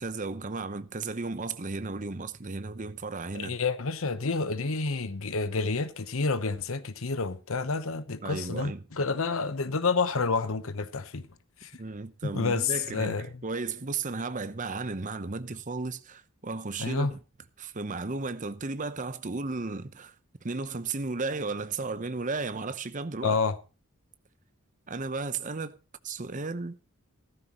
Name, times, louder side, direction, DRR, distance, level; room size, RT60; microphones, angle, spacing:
voice 1, 0.0-3.6 8.2-8.9 11.8-17.2 17.6-20.1 20.4-23.4 24.9-25.8 26.0-26.8, right 3 dB, 35° right, 0.8 m, -34 dB
voice 2, 3.3-11.2 11.6-11.7 12.2-13.3 16.8-17.1 23.2-23.6, left 4 dB, 65° left, 0.9 m, -29 dB
15.5 x 13.5 x 3.0 m
head